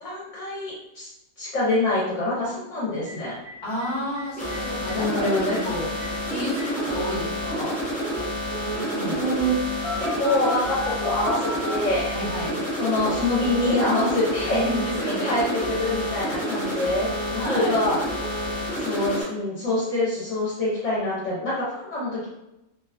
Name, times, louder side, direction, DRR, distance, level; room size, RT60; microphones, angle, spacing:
voice 1, 0.0-1.1 1.4-3.4 4.9-5.7 9.0-9.6 10.0-12.1 12.8-14.6 15.1-18.0 18.8-22.3, left 1 dB, 65° left, -8 dB, 1.1 m, -25 dB
Telephone, 3.1-3.2 3.4-3.5 3.8-3.9 4.2-4.6 4.9-5.0 5.2-5.6 6.0-6.1 6.6-7.2 8.0-8.2 8.5-9.2 9.8-12.5 12.8-13.1 13.4-13.7 14.0-14.3 14.6-14.9 15.2-15.5 15.8-16.1 16.4-17.3 17.6-17.9 18.2-18.5, right 1 dB, 90° right, 1.3 m, -34 dB
voice 2, 3.6-5.3 5.6-5.9 6.2-7.8 8.6-9.2 12.1-12.5 14.4-15.8 17.3-17.8, equal, 35° left, -7 dB, 1.3 m, -31 dB
sound 1, 4.4-19.2, equal, 10° left, 0.4 m, -29 dB
2.9 x 2.2 x 2.3 m, 0.89 s
omnidirectional pair, 1.4 m